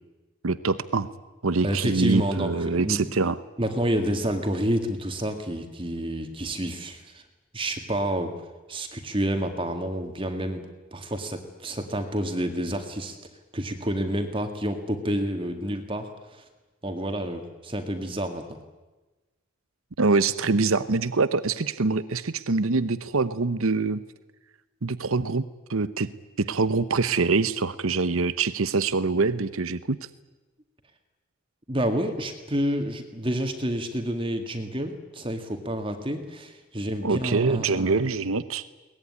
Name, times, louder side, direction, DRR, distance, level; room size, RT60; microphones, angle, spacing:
voice 1, 0.4-1.1 1.4-3.4 20.0-24.0 24.8-26.1 26.4-30.0 37.0-38.7, right 4 dB, 80° right, 14 dB, 0.9 m, -24 dB
voice 2, 1.6-3.1 3.6-7.2 7.5-8.3 8.7-13.2 13.5-16.4 16.8-18.6 31.7-38.0, right 1 dB, 25° right, 6 dB, 2.0 m, -29 dB
22.5 x 19.5 x 9.7 m, 1.2 s
head